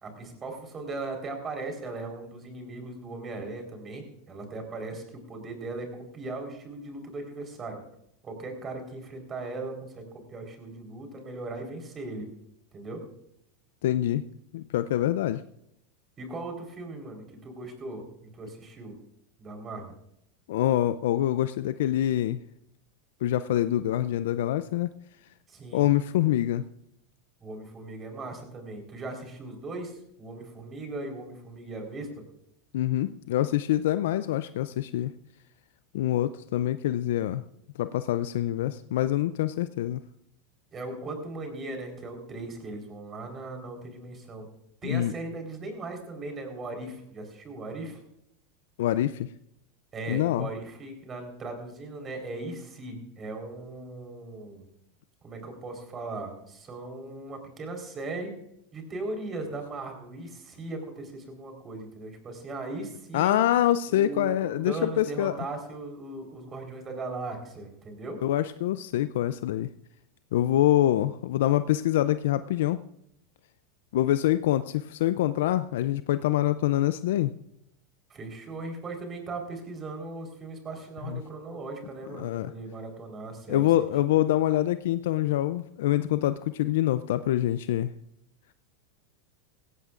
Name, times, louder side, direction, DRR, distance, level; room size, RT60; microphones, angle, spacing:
voice 1, 0.0-7.8 8.2-12.2 12.7-13.0 16.2-18.1 18.3-18.9 19.4-19.9 25.5-25.9 27.4-32.1 40.7-44.5 44.8-48.0 49.9-54.7 55.2-58.3 58.7-63.4 63.9-68.2 78.1-83.7, right 2 dB, 30° right, 4 dB, 4.2 m, -38 dB
voice 2, 13.8-14.2 14.5-15.4 20.5-22.4 23.2-24.9 25.7-26.6 32.7-35.1 35.9-37.4 37.8-40.0 44.8-45.1 48.8-49.3 50.1-50.5 63.1-65.4 68.2-69.7 70.3-72.8 73.9-77.3 81.1-81.2 82.2-82.5 83.5-87.9, left 13 dB, 75° left, 13 dB, 0.4 m, -25 dB
16.5 x 16.5 x 2.5 m, 0.77 s
hypercardioid pair, 105°, 0 cm